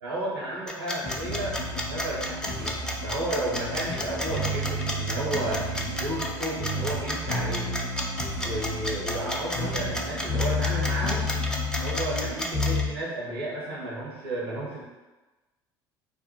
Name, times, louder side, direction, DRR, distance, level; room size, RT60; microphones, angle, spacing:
voice 1, 0.0-7.7 8.4-11.3 11.8-14.8, right 1 dB, 85° right, -6 dB, 0.7 m, -33 dB
sound 1, 0.7-12.8, left 1 dB, 5° left, 0.4 m, -32 dB
sound 2, 1.0-12.5, equal, 35° left, 0.7 m, -37 dB
sound 3, 1.3-4.0 4.3-6.3 6.6-10.0 10.3-12.9, left 2 dB, 65° left, 0.9 m, -32 dB
2.5 x 2.0 x 2.9 m, 1.2 s
hypercardioid pair, 65°, 13 cm